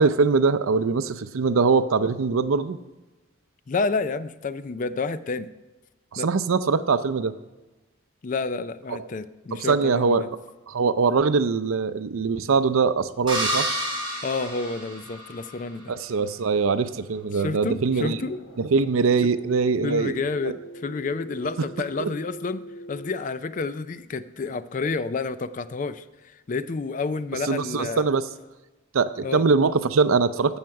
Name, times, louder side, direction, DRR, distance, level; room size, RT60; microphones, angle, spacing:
voice 1, 0.0-2.8 6.1-7.3 9.5-10.3 10.7-13.7 15.9-18.2 18.6-20.1 20.4-20.5 22.0-22.1 27.4-28.2 28.9-30.6, right 4 dB, 85° right, 13 dB, 0.5 m, -22 dB
voice 2, 3.7-5.5 6.2-6.3 8.2-10.3 14.2-15.9 17.3-18.5 19.8-28.1 29.2-29.4, left 4 dB, 40° left, 14 dB, 0.4 m, -30 dB
sound 1, 13.3-15.5, right 1 dB, 25° right, 3.6 m, -29 dB
sound 2, 18.3-23.1, right 1 dB, 90° left, 1.8 m, -43 dB
15.5 x 6.4 x 4.7 m, 1.1 s
head